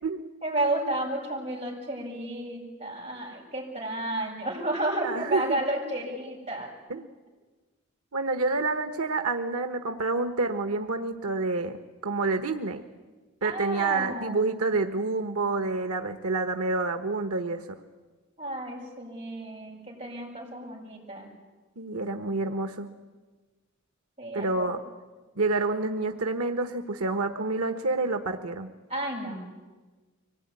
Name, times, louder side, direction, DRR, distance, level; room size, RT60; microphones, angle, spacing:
voice 1, 0.4-6.7 13.4-14.6 18.4-21.3 24.2-24.8 28.9-29.4, right 1 dB, 30° right, -3 dB, 7.6 m, -32 dB
voice 2, 5.0-5.6 6.9-7.0 8.1-11.8 12.0-12.8 13.4-17.7 21.8-22.9 24.3-24.8 25.3-28.7, right 3 dB, 90° right, 7 dB, 1.2 m, -28 dB
24.5 x 18.5 x 9.7 m, 1.3 s
head